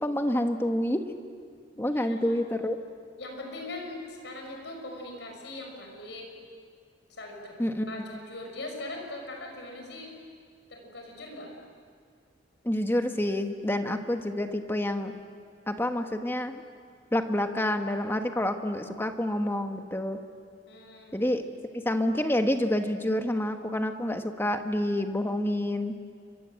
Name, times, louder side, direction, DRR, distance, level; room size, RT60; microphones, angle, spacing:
voice 1, 0.0-1.0 1.8-2.8 7.6-7.8 12.6-15.1 15.7-16.6 17.1-20.2 21.1-21.4 21.7-25.9, left 1 dB, 10° left, 6 dB, 1.3 m, -28 dB
voice 2, 1.7-2.4 3.2-6.3 7.1-10.1 10.7-11.5 20.7-21.2, left 2 dB, 70° left, 2 dB, 6.1 m, -41 dB
29.5 x 24.5 x 7.8 m, 2.1 s
head